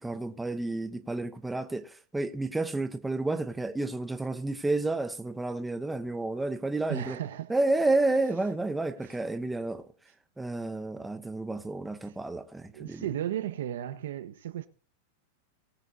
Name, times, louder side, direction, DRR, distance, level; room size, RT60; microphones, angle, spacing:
voice 1, 0.0-7.2 7.5-9.8 10.4-13.0, right 2 dB, 5° right, 0.7 m, -30 dB
voice 2, 6.9-7.6 12.7-14.7, right 11 dB, 85° right, 1.2 m, -34 dB
20.5 x 9.0 x 2.7 m
supercardioid pair, 165°, 0 cm